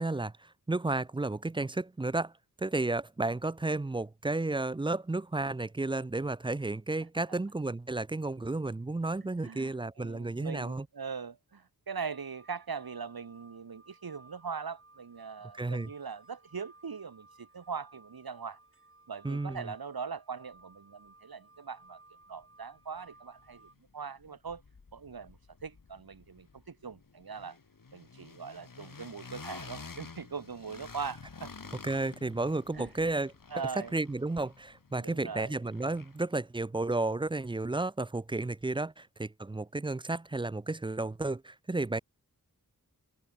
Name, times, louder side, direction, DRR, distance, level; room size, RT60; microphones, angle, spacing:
voice 1, 0.0-2.3 2.6-10.9 15.5-15.9 19.2-19.7 31.8-33.3 33.9-42.0, right 2 dB, 15° right, 0.4 m, -32 dB
voice 2, 9.2-18.6 19.1-22.0 22.3-24.6 24.9-27.6 27.9-31.5 32.7-32.9 33.5-33.9 35.0-35.6, right 5 dB, 85° right, 3.1 m, -41 dB
sound 1, 12.1-23.7, right 3 dB, 35° right, 6.8 m, -59 dB
sound 2, 22.4-22.5 22.8-23.9 24.2-36.4, left 4 dB, 65° left, 6.5 m, -50 dB
open air
wide cardioid pair, 100°, 36 cm